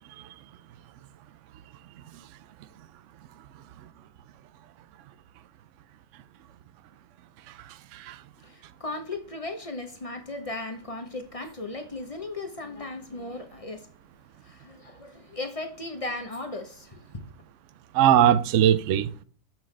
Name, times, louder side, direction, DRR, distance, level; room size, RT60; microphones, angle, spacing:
voice 1, 8.4-13.9 14.4-17.3, left 2 dB, 30° left, 0.8 m, -36 dB
voice 2, 17.9-19.2, right 10 dB, 70° right, 0.9 m, -20 dB
6.8 x 5.9 x 3.2 m
omnidirectional pair, 1.4 m